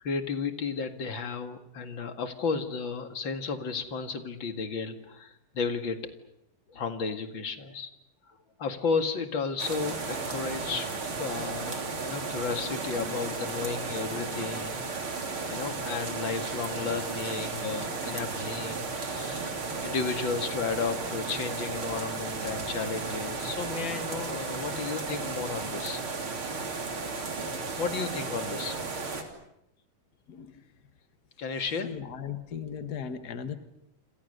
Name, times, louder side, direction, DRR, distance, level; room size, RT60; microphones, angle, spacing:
voice 1, 0.0-6.1 6.7-7.9 8.3-15.2 15.5-19.5 19.8-26.0 27.1-27.2 27.8-28.8 31.4-31.9, left 5 dB, 40° left, 8 dB, 2.1 m, -33 dB
sound 1, 9.6-29.2, right 4 dB, 35° right, 3.7 m, -34 dB
voice 2, 30.3-30.7 31.8-33.5, left 7 dB, 85° left, 9 dB, 0.8 m, -37 dB
29.0 x 27.0 x 6.7 m, 0.79 s
omnidirectional pair, 4.3 m